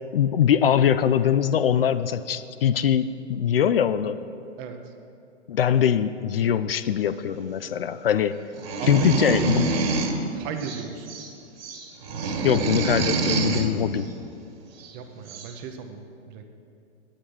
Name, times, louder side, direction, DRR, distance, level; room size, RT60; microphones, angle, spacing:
voice 1, 0.1-4.2 5.5-8.4 8.9-9.7 12.4-14.1, left 9 dB, 55° left, 12 dB, 0.4 m, -22 dB
voice 2, 4.6-4.9 8.8-9.5 10.4-11.2 14.9-16.4, right 7 dB, 20° right, 6 dB, 0.6 m, -36 dB
sound 1, 8.5-10.2 10.6-11.3 11.6-13.7 14.8-14.9 15.3-15.5, right 3 dB, 55° right, 1.8 m, -26 dB
9.8 x 8.7 x 6.2 m, 2.6 s
figure-of-eight pair, 115°, 35 cm